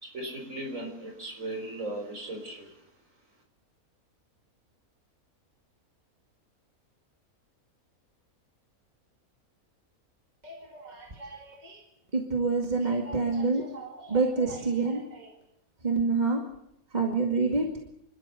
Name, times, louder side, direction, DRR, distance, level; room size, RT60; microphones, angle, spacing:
voice 1, 0.0-2.7, right 1 dB, 60° right, 2 dB, 4.8 m, -37 dB
voice 2, 10.4-11.8 12.1-15.3 15.8-16.4 16.9-17.7, right 4 dB, 30° right, 1 dB, 2.3 m, -28 dB
28.0 x 13.0 x 8.1 m, 0.80 s
omnidirectional pair, 1.5 m